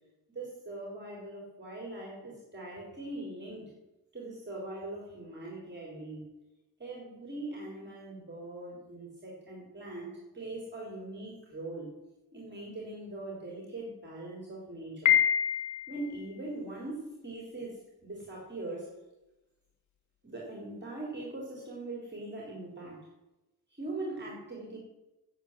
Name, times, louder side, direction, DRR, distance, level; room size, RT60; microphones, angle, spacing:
voice 1, 0.3-3.7 4.1-6.4 6.8-11.9 12.3-15.1 15.9-18.9 20.2-23.1 23.7-24.8, right 2 dB, 30° right, -2 dB, 4.0 m, -41 dB
Piano, 15.1-16.1, left 10 dB, 50° left, 1.4 m, -25 dB
9.3 x 7.8 x 9.0 m, 0.99 s
cardioid pair, 80°, 37 cm